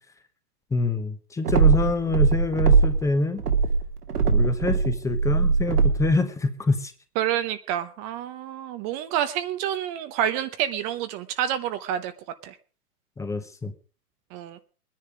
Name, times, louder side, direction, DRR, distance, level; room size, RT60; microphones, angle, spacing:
voice 1, 0.7-3.4 4.3-6.9 13.2-13.7, left 3 dB, 5° left, 9 dB, 1.0 m, -26 dB
sound 1, 1.5-3.1 3.4-6.1, right 5 dB, 80° right, 2.4 m, -20 dB
voice 2, 7.2-12.1 12.4-12.6 14.3-14.6, right 11 dB, 25° right, 10 dB, 0.8 m, -28 dB
20.5 x 10.5 x 5.1 m, 0.40 s
hypercardioid pair, 125°, 46 cm